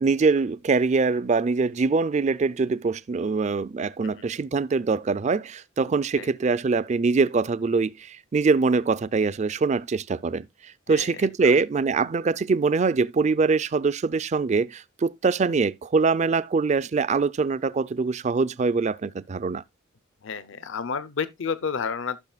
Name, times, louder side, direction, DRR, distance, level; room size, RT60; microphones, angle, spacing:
voice 1, 0.0-10.5 10.9-19.6, right 4 dB, 35° right, 0.4 m, -23 dB
voice 2, 10.9-11.6 20.2-22.2, left 6 dB, 70° left, 0.7 m, -31 dB
14.5 x 6.1 x 2.3 m
head